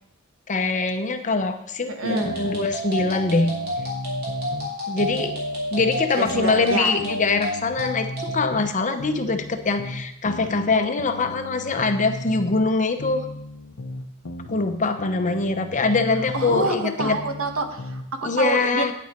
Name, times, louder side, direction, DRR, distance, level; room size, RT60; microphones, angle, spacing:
voice 1, 0.5-3.5 4.9-5.3 5.7-13.2 14.5-17.2 18.2-18.9, left 3 dB, 35° left, 7 dB, 0.8 m, -23 dB
voice 2, 1.9-2.3 6.2-7.0 16.3-18.8, right 3 dB, 75° right, 6 dB, 1.2 m, -27 dB
sound 1, 2.1-8.4, equal, 50° right, 3.6 m, -30 dB
sound 2, 2.2-4.7 5.0-8.7 9.0-12.7 13.0-16.7 17.0-18.1, left 1 dB, 90° left, 0.8 m, -36 dB
9.6 x 8.6 x 4.5 m, 0.78 s
head